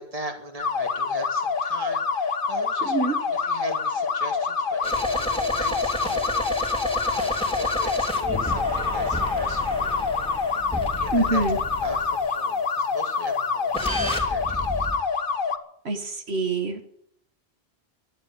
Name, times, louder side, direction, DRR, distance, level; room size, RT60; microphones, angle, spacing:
voice 1, 0.0-10.1 11.0-11.4 11.8-14.9, right 1 dB, 35° right, 5 dB, 2.4 m, -40 dB
sound 1, 0.6-15.6, left 5 dB, 55° left, 1.3 m, -26 dB
sound 2, 4.8-12.3 13.7-14.9, right 1 dB, 5° left, 3.3 m, -31 dB
voice 2, 11.1-11.6 15.9-16.8, right 2 dB, 80° right, 6 dB, 1.7 m, -25 dB
12.0 x 11.5 x 8.7 m, 0.69 s
omnidirectional pair, 1.1 m